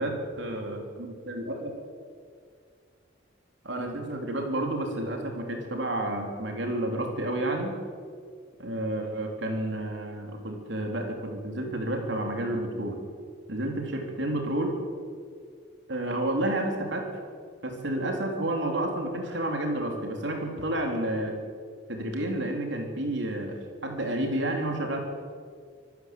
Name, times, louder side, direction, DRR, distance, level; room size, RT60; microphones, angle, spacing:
voice 1, 0.0-1.7 3.6-7.8 8.6-13.0 13.5-14.7 15.9-17.1 17.6-21.4 21.9-25.0, right 1 dB, 70° right, 2 dB, 3.9 m, -30 dB
26.0 x 15.0 x 8.0 m, 2.1 s
head